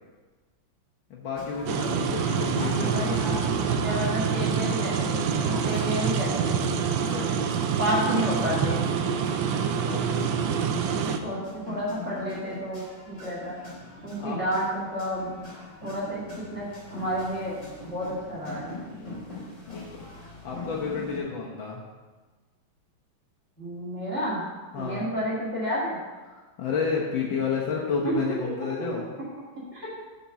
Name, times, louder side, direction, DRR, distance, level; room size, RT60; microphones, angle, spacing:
voice 1, 1.1-3.5 6.9-7.5 9.7-10.8 14.2-14.4 18.9-19.3 19.7-21.8 24.7-25.1 26.3-29.1, left 5 dB, 75° left, -3 dB, 1.8 m, -32 dB
sound 1, 1.3-21.2, left 2 dB, 35° left, 3.1 m, -41 dB
sound 2, 1.7-11.2, right 7 dB, 80° right, 1.3 m, -26 dB
voice 2, 2.4-6.5 7.8-8.8 11.0-13.6 14.0-15.3 15.8-16.7 16.9-17.5 17.8-18.7 23.6-24.4 24.7-26.0 28.0-28.2 28.6-28.7 29.7-29.9, equal, 35° right, -7 dB, 2.5 m, -31 dB
7.1 x 5.1 x 7.0 m, 1.3 s
omnidirectional pair, 2.2 m